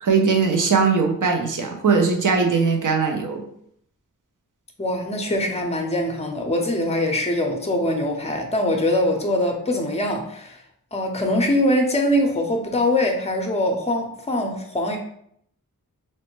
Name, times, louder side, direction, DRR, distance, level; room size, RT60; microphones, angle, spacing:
voice 1, 0.0-3.4, right 5 dB, 65° right, 3 dB, 0.6 m, -20 dB
voice 2, 4.8-10.6 10.9-15.0, left 1 dB, 20° left, 3 dB, 0.6 m, -23 dB
3.1 x 2.1 x 3.0 m, 0.69 s
cardioid pair, 40°, 35 cm